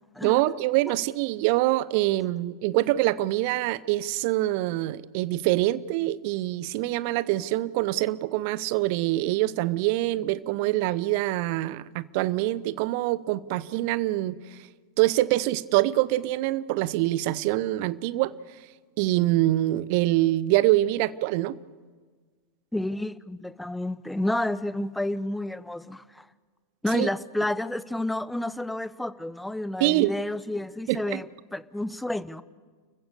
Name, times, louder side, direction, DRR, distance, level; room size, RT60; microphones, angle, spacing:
voice 1, 0.2-14.4 15.0-18.3 19.0-21.6 26.9-27.1 29.8-30.1 30.9-31.2, right 16 dB, 45° right, 0.7 m, -25 dB
voice 2, 22.7-26.3 26.8-32.4, left 1 dB, 5° left, 0.7 m, -30 dB
30.0 x 15.0 x 6.9 m
figure-of-eight pair, 90°, 0 cm